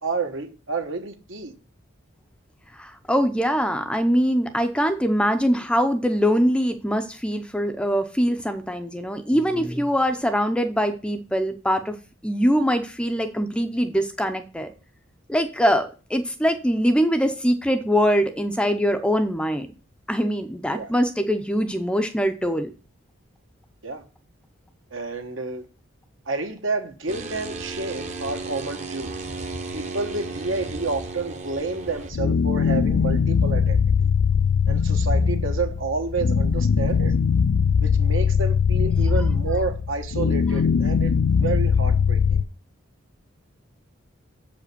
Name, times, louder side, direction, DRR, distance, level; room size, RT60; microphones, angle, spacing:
voice 1, 0.0-1.5 20.7-20.9 23.8-24.0 24.9-25.6 26.3-29.1 29.7-34.1 34.7-37.1 37.8-42.5, right 3 dB, 70° right, 1.2 m, -30 dB
voice 2, 2.8-11.9 12.2-14.7 15.3-19.7 20.1-22.7 39.0-39.3, equal, 5° left, 0.6 m, -23 dB
sound 1, 27.1-32.1, right 3 dB, 35° right, 0.9 m, -34 dB
sound 2, 32.1-42.4, left 6 dB, 80° left, 0.4 m, -21 dB
7.2 x 5.0 x 6.7 m
head